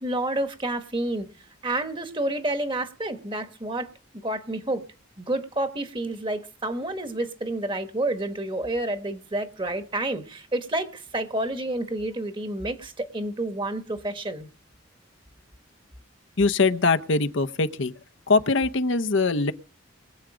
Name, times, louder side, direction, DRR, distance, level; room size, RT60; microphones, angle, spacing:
voice 1, 0.0-1.3 1.6-3.9 4.2-4.8 5.2-14.5, right 1 dB, 25° right, 1.4 m, -29 dB
voice 2, 16.4-17.9 18.3-19.5, left 3 dB, 65° left, 0.8 m, -22 dB
22.5 x 8.1 x 5.0 m
head